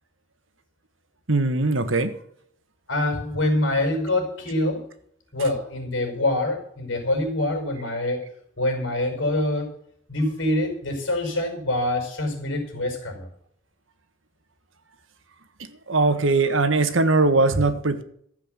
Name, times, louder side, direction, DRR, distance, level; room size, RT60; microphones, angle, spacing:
voice 1, 1.3-2.1 15.9-18.0, right 3 dB, 85° right, 10 dB, 1.6 m, -20 dB
voice 2, 2.9-4.8 5.3-8.2 8.6-9.7 10.1-13.3, left 1 dB, 70° left, 4 dB, 5.8 m, -25 dB
14.5 x 7.9 x 8.2 m, 0.66 s
head